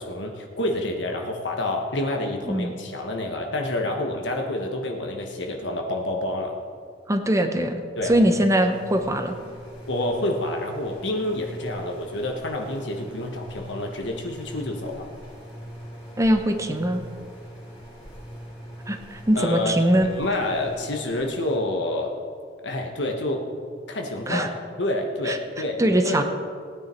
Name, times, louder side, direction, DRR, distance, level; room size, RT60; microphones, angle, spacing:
voice 1, 0.0-6.6 7.9-8.1 9.9-15.1 19.3-19.7 20.0-22.2 22.6-23.4 23.9-24.5 24.8-26.2, left 1 dB, 70° left, 2 dB, 1.4 m, -28 dB
voice 2, 2.5-2.8 7.1-9.3 16.2-17.0 18.9-20.1 24.3-24.5 25.2-25.4 25.8-26.2, right 1 dB, 15° right, 6 dB, 0.9 m, -22 dB
sound 1, 8.0-21.6, equal, 30° left, 3.1 m, -42 dB
18.0 x 9.5 x 4.5 m, 2.1 s
head